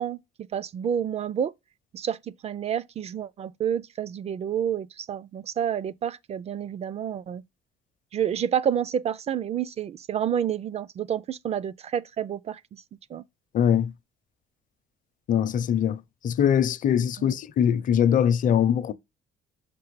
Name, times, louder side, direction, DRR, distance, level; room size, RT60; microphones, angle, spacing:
voice 1, 0.0-1.5 1.9-7.4 8.1-12.8 13.1-13.2 17.2-17.3, right 9 dB, 40° right, 0.4 m, -29 dB
voice 2, 13.5-13.9 15.3-16.0 16.2-18.9, left 9 dB, 50° left, 0.6 m, -22 dB
6.0 x 5.6 x 3.1 m
cardioid pair, 110°, 17 cm